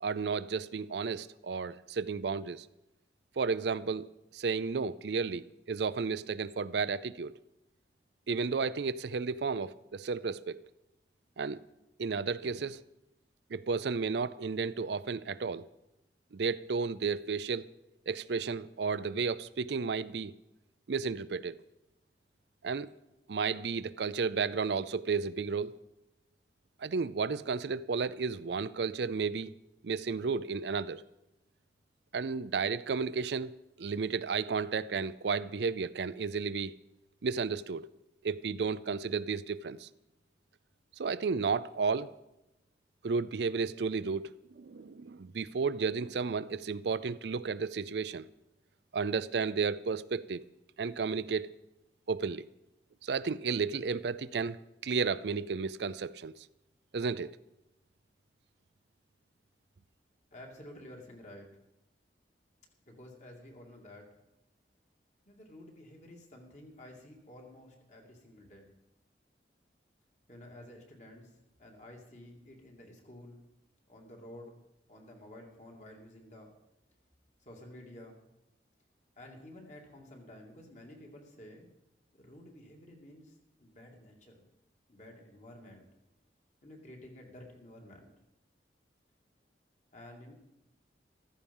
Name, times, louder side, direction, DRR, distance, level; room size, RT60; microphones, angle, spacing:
voice 1, 0.0-2.7 3.4-7.3 8.3-10.6 11.4-11.6 12.0-12.9 13.5-15.7 16.3-17.7 18.1-20.3 20.9-21.6 22.6-22.9 23.3-25.8 26.8-29.5 29.8-31.0 32.1-36.7 37.2-37.9 38.2-39.9 41.0-42.2 43.0-48.3 48.9-50.4 50.8-51.6 52.1-52.4 53.0-54.6 54.8-56.3 56.9-57.4, right 5 dB, 70° right, 0.5 m, -33 dB
voice 2, 60.3-61.5 62.9-64.1 65.3-68.7 70.3-71.3 71.6-73.4 73.9-74.6 74.9-76.5 77.4-78.2 79.2-81.7 82.1-84.4 84.9-85.9 86.6-88.1 89.9-90.3, left 1 dB, 40° left, 2.6 m, -51 dB
14.5 x 14.0 x 5.5 m
head